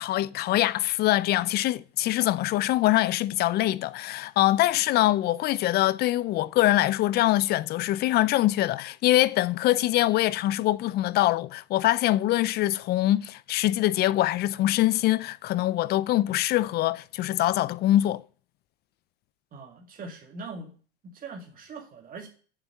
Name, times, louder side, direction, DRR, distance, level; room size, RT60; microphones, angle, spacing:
voice 1, 0.0-18.2, left 15 dB, 30° left, 0.5 m, -24 dB
voice 2, 19.5-20.7 21.0-22.3, right 3 dB, 25° right, 2.1 m, -41 dB
7.8 x 6.9 x 7.1 m
hypercardioid pair, 100°, 32 cm